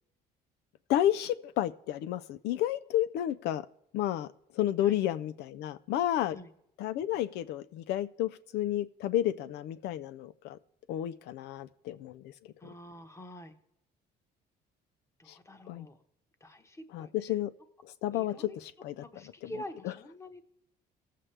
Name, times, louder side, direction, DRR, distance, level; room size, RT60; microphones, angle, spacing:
voice 1, 0.9-3.7 3.9-4.3 4.5-6.4 6.8-10.6 10.9-12.3 15.3-15.4 15.7-15.9 16.9-17.5 17.8-19.0 19.4-19.5 19.8-19.9, left 12 dB, 80° left, 14 dB, 0.4 m, -31 dB
voice 2, 12.6-13.5 15.2-16.0 16.4-17.4 18.1-18.6 19.0-20.4, left 1 dB, 15° left, 8 dB, 1.0 m, -46 dB
18.5 x 7.5 x 3.3 m, 0.80 s
cardioid pair, 110°, 17 cm